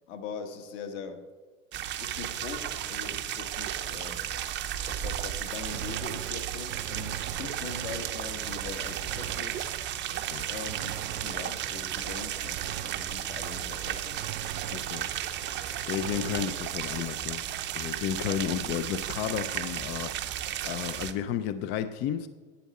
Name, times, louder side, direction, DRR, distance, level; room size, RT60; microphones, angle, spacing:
voice 1, 0.1-1.2 2.0-4.2 4.8-9.7 10.5-14.1, left 5 dB, 65° left, 5 dB, 1.5 m, -41 dB
sound 1, 1.7-21.1, right 11 dB, 30° right, 0.6 m, -34 dB
Gunshot gunfire, 5.7-13.5 13.7-17.1, right 12 dB, 75° right, 0.6 m, -43 dB
voice 2, 14.7-15.1 15.4-15.5 15.9-17.4 17.7-22.3, left 10 dB, 30° left, 11 dB, 0.3 m, -32 dB
11.0 x 8.5 x 4.1 m, 1.4 s
supercardioid pair, 130°, 39 cm